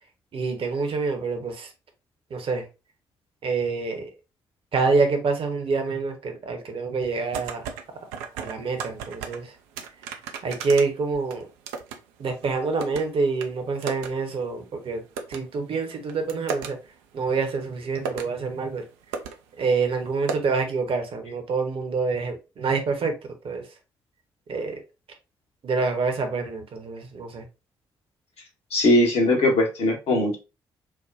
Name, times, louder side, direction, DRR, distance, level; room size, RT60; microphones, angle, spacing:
voice 1, 0.3-1.7 2.3-2.7 3.4-4.1 4.7-7.6 8.4-9.5 10.4-11.5 12.2-15.0 15.3-16.8 17.1-18.8 19.6-23.1 23.4-23.6 24.5-24.8 25.6-27.4, right 4 dB, 50° right, 0.9 m, -26 dB
sound 1, 7.0-7.8 8.1-9.4 9.8-12.0 12.3-13.0 13.4-13.5 13.8-14.1 14.4-14.5 15.2-15.4 15.9-16.7 17.5-17.6 18.0-18.3 18.8-18.9 19.1-19.3 19.6-19.7 20.3-20.4, right 6 dB, 75° right, 0.4 m, -33 dB
voice 2, 28.7-30.4, left 1 dB, 60° left, 1.1 m, -20 dB
4.6 x 2.2 x 2.5 m
figure-of-eight pair, 40°, 12 cm